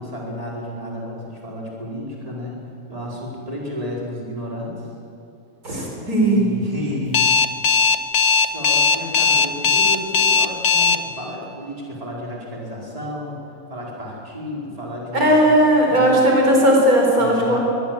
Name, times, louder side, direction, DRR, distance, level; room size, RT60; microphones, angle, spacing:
voice 1, 0.0-2.5 2.9-4.9 6.3-7.3 8.4-13.4 13.7-15.5 15.9-16.3 17.2-17.6, left 1 dB, 25° right, -4 dB, 5.0 m, -32 dB
voice 2, 5.6-6.6 15.1-17.6, right 1 dB, 70° right, -1 dB, 4.8 m, -16 dB
Alarm, 7.1-11.0, left 5 dB, 50° left, 1.2 m, -17 dB
24.0 x 20.5 x 7.7 m, 2.8 s
omnidirectional pair, 1.6 m